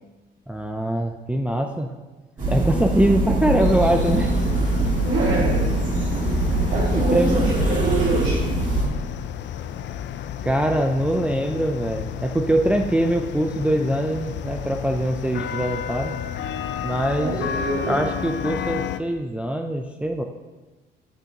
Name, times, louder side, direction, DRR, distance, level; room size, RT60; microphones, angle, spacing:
voice 1, 0.5-1.9 2.5-4.3 6.9-7.4 10.4-16.1 16.8-17.3 17.9-20.2, right 1 dB, 5° right, 3 dB, 0.5 m, -23 dB
sound 1, 2.4-8.9, right 2 dB, 40° right, 2.4 m, -23 dB
sound 2, 3.6-19.0, left 9 dB, 65° left, 0.4 m, -32 dB
voice 2, 5.0-5.6 6.7-8.4 17.2-18.0, right 2 dB, 80° right, -8 dB, 2.2 m, -25 dB
8.3 x 6.8 x 2.9 m, 1.2 s
cardioid pair, 90°, 20 cm